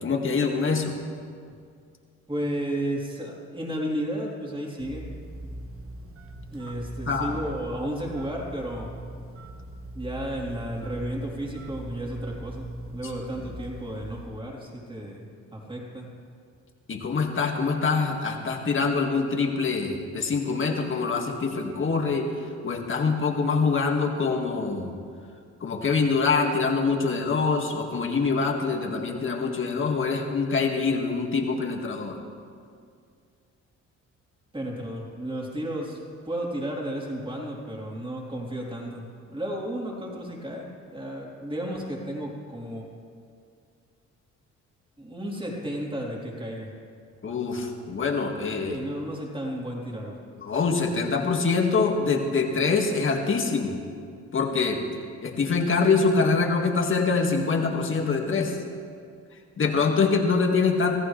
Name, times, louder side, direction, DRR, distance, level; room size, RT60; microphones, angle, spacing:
voice 1, 0.0-1.0 7.1-7.4 13.0-13.1 16.9-24.9 25.6-32.2 47.2-48.8 50.4-53.8 54.3-54.8 55.2-58.6 59.6-61.0, left 4 dB, 40° left, 2 dB, 2.0 m, -25 dB
voice 2, 2.3-5.1 6.5-8.9 9.9-16.1 34.5-36.0 36.2-42.9 45.0-46.7 48.6-50.2, right 1 dB, 15° right, -2 dB, 3.7 m, -33 dB
Telephone, 4.8-14.5, right 1 dB, 50° right, 1.6 m, -41 dB
24.0 x 14.5 x 3.3 m, 2.2 s
cardioid pair, 90°, 30 cm